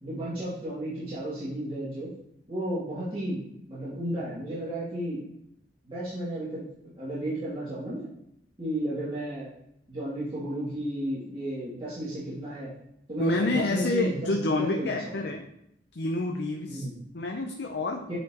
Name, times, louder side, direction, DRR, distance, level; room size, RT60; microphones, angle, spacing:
voice 1, 0.0-2.1 2.5-5.2 5.8-6.7 7.0-8.1 8.6-9.5 9.9-12.7 13.1-15.3 16.7-17.0 18.1-18.2, right 1 dB, 30° right, -12 dB, 2.4 m, -33 dB
voice 2, 13.2-15.4 16.0-16.8 17.1-18.1, left 2 dB, 65° left, 3 dB, 0.6 m, -28 dB
9.3 x 4.2 x 2.9 m, 0.76 s
head